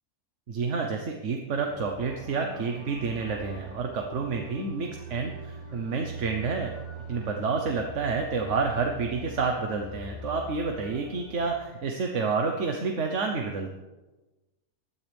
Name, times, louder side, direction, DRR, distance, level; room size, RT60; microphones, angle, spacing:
voice 1, 0.5-6.7 7.1-13.7, right 4 dB, 55° right, 3 dB, 1.3 m, -29 dB
sound 1, 1.5-11.6, right 2 dB, 20° left, 4.0 m, -43 dB
19.5 x 12.5 x 3.5 m, 1.1 s
omnidirectional pair, 1.6 m